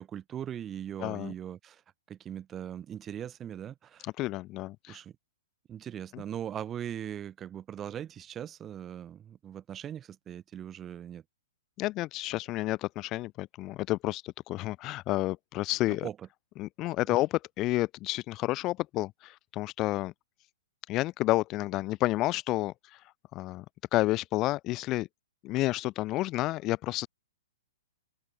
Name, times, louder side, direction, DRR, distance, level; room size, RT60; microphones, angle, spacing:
voice 1, 0.0-1.8 2.1-4.1 4.9-5.1 5.7-11.2 15.9-16.3 17.1-17.2, right 9 dB, 15° right, 1.6 m, -40 dB
voice 2, 1.0-1.3 4.2-5.0 6.1-6.2 11.8-16.1 16.6-20.1 20.9-23.0 23.3-23.6 23.9-25.1 25.4-27.1, left 18 dB, 20° left, 0.8 m, -30 dB
open air
hypercardioid pair, 170°, 0 cm